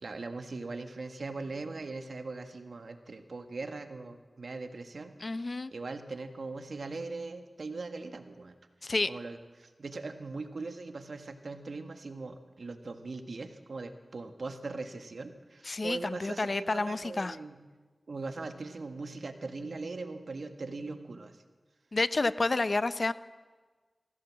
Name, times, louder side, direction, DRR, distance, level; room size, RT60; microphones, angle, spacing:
voice 1, 0.0-5.4 5.7-8.6 9.1-17.6 18.1-21.4, right 3 dB, 80° right, 7 dB, 1.7 m, -40 dB
voice 2, 5.2-5.7 8.8-9.1 15.6-17.4 21.9-23.1, left 3 dB, 55° left, 14 dB, 0.7 m, -30 dB
24.5 x 16.0 x 7.5 m, 1.4 s
wide cardioid pair, 70°, 0 cm